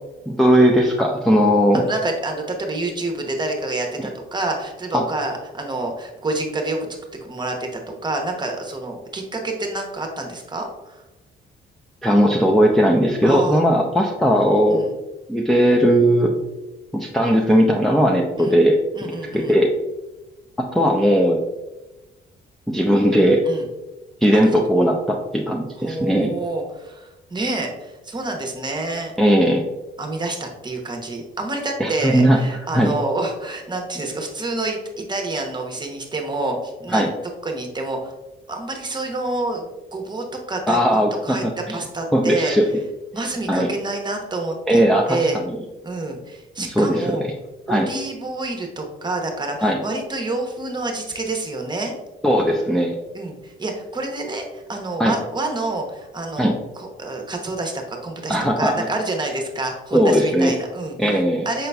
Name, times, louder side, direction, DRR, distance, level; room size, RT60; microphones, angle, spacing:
voice 1, 0.3-1.8 4.9-5.0 12.0-14.8 15.3-16.3 16.9-18.8 19.3-19.7 20.6-21.4 22.7-23.4 24.2-26.3 29.2-29.6 31.8-32.4 32.7-32.9 36.9-37.1 40.7-41.8 42.1-42.7 43.5-43.7 44.7-45.2 46.6-47.2 47.7-47.9 49.6-49.8 52.2-52.9 55.0-55.1 56.4-56.5 58.3-58.9 59.9-60.5 61.0-61.5, equal, ahead, -2 dB, 0.5 m, -18 dB
voice 2, 1.7-11.0 13.2-13.6 14.7-14.9 18.4-18.6 18.9-19.6 23.4-23.7 24.3-24.5 25.8-29.1 30.0-37.1 37.4-38.1 38.5-42.5 43.1-44.8 45.1-45.4 45.8-47.2 47.7-51.9 53.1-61.7, right 2 dB, 20° right, 2 dB, 0.9 m, -28 dB
5.7 x 3.9 x 2.2 m, 1.0 s
cardioid pair, 90°, 20 cm